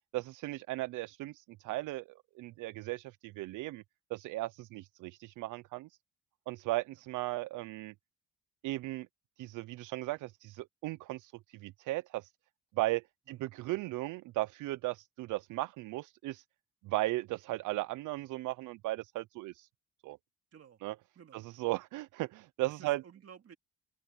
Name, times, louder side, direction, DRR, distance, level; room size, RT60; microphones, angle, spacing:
voice 1, 0.1-2.0 2.4-3.8 4.1-5.9 6.5-7.9 8.6-9.1 9.4-12.3 12.8-16.4 16.8-19.7 20.0-20.2 20.8-20.9 21.3-23.0, right 18 dB, 85° right, 0.5 m, -36 dB
voice 2, 20.5-20.8 21.1-21.5 22.6-23.6, right 7 dB, 50° right, 2.4 m, -55 dB
open air
cardioid pair, 90°, 30 cm